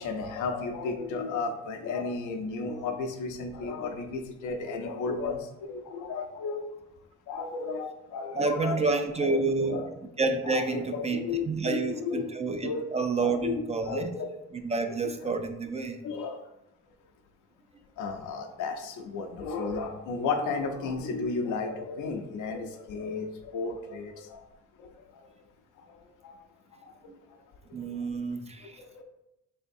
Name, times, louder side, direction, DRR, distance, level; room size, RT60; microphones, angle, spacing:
voice 1, 0.0-6.7 7.3-9.0 9.3-9.9 10.4-12.3 12.6-14.3 14.7-15.3 16.0-16.4 18.0-24.4 24.8-24.9 25.9-26.0 26.2-26.3 26.8-26.9 27.8-27.9 28.8-29.0, left 4 dB, 85° left, 5 dB, 0.6 m, -34 dB
voice 2, 8.3-9.9 10.2-14.1 14.5-16.0 27.1-27.2 27.7-28.8, right 3 dB, 20° right, 7 dB, 0.4 m, -29 dB
3.8 x 3.4 x 2.6 m, 0.89 s
cardioid pair, 90°, 30 cm